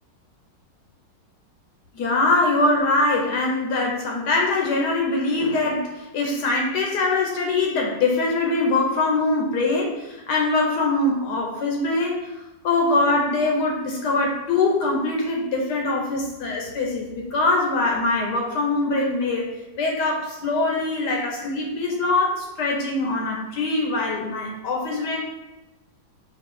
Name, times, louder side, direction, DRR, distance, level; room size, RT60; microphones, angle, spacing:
voice 1, 1.9-12.3 12.6-19.5 19.8-25.2, left 2 dB, 70° left, -1 dB, 1.2 m, -23 dB
5.0 x 2.4 x 3.6 m, 0.99 s
omnidirectional pair, 2.0 m